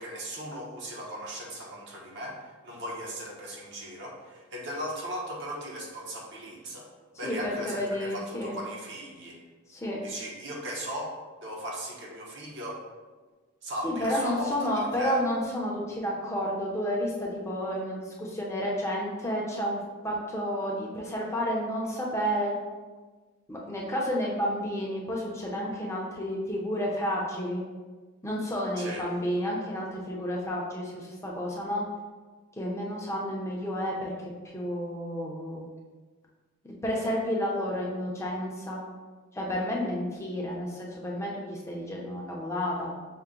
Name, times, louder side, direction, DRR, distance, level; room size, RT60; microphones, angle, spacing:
voice 1, 0.0-6.9 7.1-9.4 10.0-12.8 13.6-15.2 28.8-29.1, equal, 55° right, -2 dB, 0.8 m, -38 dB
voice 2, 7.2-8.6 9.7-10.0 13.8-22.5 23.5-27.6 28.2-31.8 32.6-34.1 34.5-35.7 36.6-38.8 39.3-42.9, equal, 15° left, -3 dB, 0.6 m, -31 dB
5.5 x 2.1 x 3.7 m, 1.4 s
head